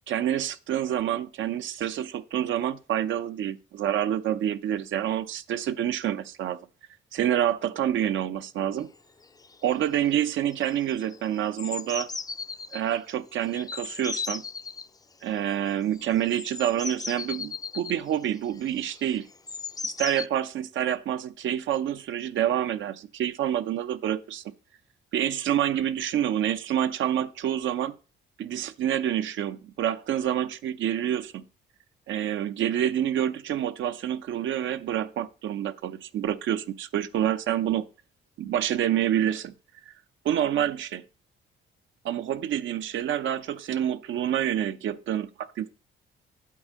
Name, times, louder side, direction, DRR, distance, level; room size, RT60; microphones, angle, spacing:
voice 1, 0.1-6.6 7.1-8.9 9.6-12.1 12.7-14.4 15.2-19.3 19.8-24.4 25.1-27.9 28.4-31.5 32.1-37.8 38.4-39.5 40.2-41.0 42.0-45.7, right 10 dB, 75° right, 0.7 m, -27 dB
sound 1, 9.0-9.1 9.2-9.6 9.9-10.3 10.5-12.8 13.5-14.9 15.9-20.3, left 4 dB, 20° left, 0.4 m, -36 dB
8.7 x 4.4 x 7.2 m
cardioid pair, 90°, 20 cm